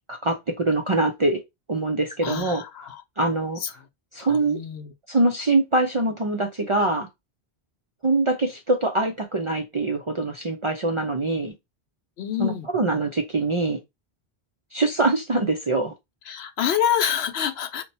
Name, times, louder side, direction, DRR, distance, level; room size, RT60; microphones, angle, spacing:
voice 1, 0.1-1.4 1.7-2.9 3.2-3.6 4.1-4.6 5.1-7.1 8.0-11.5 12.4-13.8 14.7-15.9, right 2 dB, 45° right, 0.4 m, -23 dB
voice 2, 2.2-3.0 3.6-3.7 4.2-4.9 12.2-12.7 16.3-17.8, left 9 dB, 75° left, 0.8 m, -27 dB
2.9 x 2.2 x 4.0 m
omnidirectional pair, 1.1 m